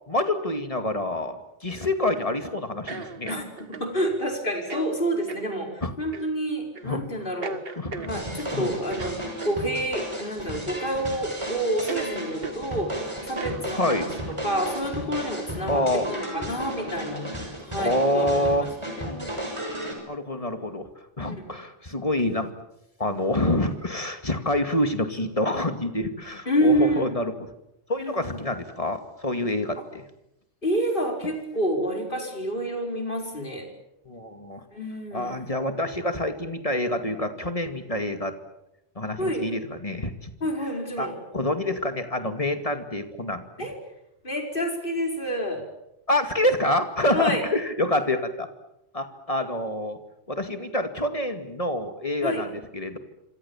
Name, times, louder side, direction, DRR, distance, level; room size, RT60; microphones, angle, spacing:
voice 1, 0.1-3.3 5.8-5.9 6.8-7.0 7.8-8.1 8.5-8.7 13.7-14.1 15.7-16.1 17.8-18.7 19.0-19.3 20.1-20.9 21.2-22.5 23.0-27.3 27.9-30.0 34.1-34.6 35.1-38.3 39.0-40.3 41.0-41.1 41.3-43.7 46.1-48.5 48.9-50.0 50.3-53.0, left 1 dB, 30° left, 7 dB, 2.4 m, -27 dB
sound 1, 1.7-2.2 2.9-3.9 4.6-4.9 5.3-5.5 6.1-6.3 6.7-6.9 7.4-8.5 8.9-9.6 10.5-11.0 11.3-11.4 11.9-12.1 12.4-12.6 13.2-14.3, right 4 dB, 55° right, 1.8 m, -37 dB
voice 2, 3.8-7.6 8.1-9.2 9.4-14.1 14.4-17.3 17.6-18.7 21.3-21.5 26.5-27.2 28.0-28.4 30.6-33.7 34.7-35.4 39.2-39.4 40.4-41.1 43.6-43.7 44.2-45.6 47.1-47.4 52.2-52.4, equal, 45° left, 2 dB, 5.4 m, -28 dB
sound 2, 8.1-19.9, equal, 25° right, 6.6 m, -34 dB
27.0 x 26.5 x 7.3 m, 0.87 s
omnidirectional pair, 1.2 m